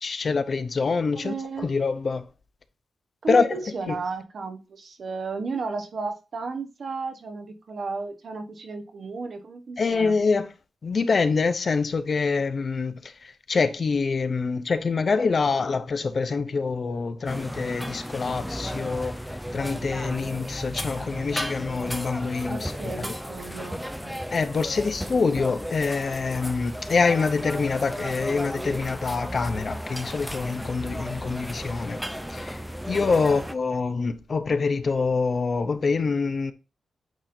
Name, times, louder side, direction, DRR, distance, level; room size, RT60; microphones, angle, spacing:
voice 1, 0.0-2.3 3.3-4.0 9.8-10.5 10.8-19.2 19.5-22.7 23.0-23.1 24.3-32.0 32.3-36.5, left 4 dB, 45° left, 0.6 m, -25 dB
voice 2, 1.1-1.7 3.2-10.1 22.5-24.2 24.7-24.9 33.2-33.4, right 4 dB, 55° right, 1.0 m, -34 dB
sound 1, 17.3-33.6, equal, ahead, 0.4 m, -34 dB
8.9 x 4.2 x 2.6 m
wide cardioid pair, 105°, 0 cm